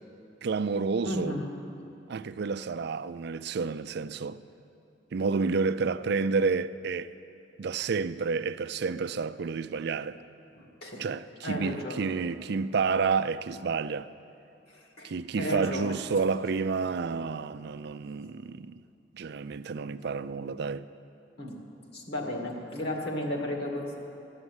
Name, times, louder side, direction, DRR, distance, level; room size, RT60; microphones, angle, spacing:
voice 1, 0.4-1.4 2.1-4.4 5.1-7.1 7.6-10.2 11.0-14.1 15.0-18.8 19.1-20.9, right 4 dB, 65° right, 0.4 m, -30 dB
voice 2, 1.0-1.5 10.6-11.0 11.4-12.1 14.7-16.0 21.4-21.6 21.9-24.0, left 1 dB, 60° left, 2.2 m, -34 dB
14.5 x 9.6 x 8.1 m
head